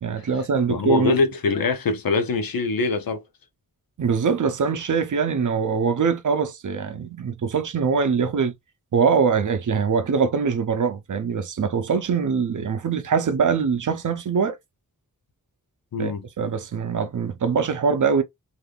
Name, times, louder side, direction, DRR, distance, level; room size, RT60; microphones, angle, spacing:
voice 1, 0.0-1.1 4.0-8.5 8.9-14.6 16.0-18.2, right 6 dB, 60° right, 0.6 m, -23 dB
voice 2, 0.7-3.2 15.9-16.2, left 3 dB, 75° left, 0.7 m, -23 dB
3.4 x 2.6 x 2.3 m
wide cardioid pair, 105°, 35 cm